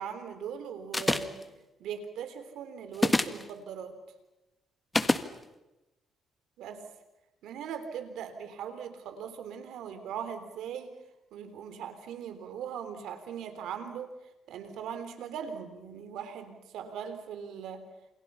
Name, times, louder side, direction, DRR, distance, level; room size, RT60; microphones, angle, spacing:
voice 1, 0.0-1.5 1.8-4.0 6.6-6.8 7.4-10.9 11.3-14.1 14.5-17.9, right 8 dB, 85° right, 9 dB, 3.5 m, -40 dB
sound 1, 0.9-1.4 2.9-3.4 4.9-5.3, left 2 dB, 15° left, 1.6 m, -25 dB
29.0 x 27.5 x 5.7 m, 1.0 s
cardioid pair, 90°, 0 cm